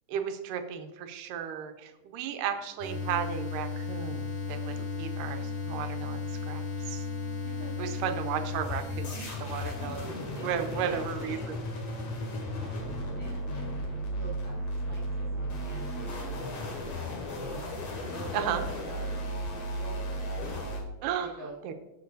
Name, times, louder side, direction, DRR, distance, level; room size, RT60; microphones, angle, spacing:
voice 1, 0.1-7.0 7.8-10.0 10.4-11.6 18.3-18.7 21.0-21.3 21.6-21.7, right 8 dB, 90° right, 7 dB, 2.4 m, -34 dB
sound 1, 2.5-20.7, left 3 dB, 85° left, 4.7 m, -53 dB
sound 2, 2.8-20.8, left 1 dB, 60° left, 3.1 m, -35 dB
voice 2, 7.4-7.9 10.3-11.6 12.2-13.6 14.1-17.6 18.0-20.5 21.2-21.6, right 2 dB, 45° right, -6 dB, 2.1 m, -47 dB
14.0 x 7.5 x 2.6 m, 1.1 s
omnidirectional pair, 3.8 m